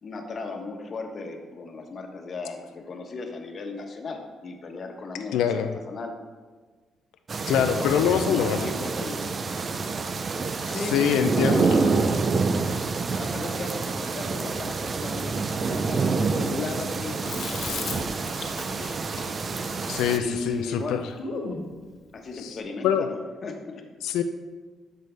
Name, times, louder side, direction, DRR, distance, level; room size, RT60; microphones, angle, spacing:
voice 1, 0.0-6.2 7.6-9.3 10.6-11.0 11.3-12.0 13.2-18.8 20.1-21.1 22.1-23.9, left 3 dB, 45° left, 4 dB, 1.2 m, -36 dB
voice 2, 5.3-5.7 7.5-8.7 10.9-11.8 19.6-21.0 22.4-22.6 22.8-23.1 24.0-24.2, left 8 dB, 90° left, 8 dB, 0.4 m, -24 dB
sound 1, 7.3-20.2, right 4 dB, 40° right, 0.5 m, -27 dB
Chewing mastication, 17.2-21.6, left 4 dB, 75° left, 1.4 m, -37 dB
10.5 x 6.7 x 3.3 m, 1.4 s
cardioid pair, 90°, 0 cm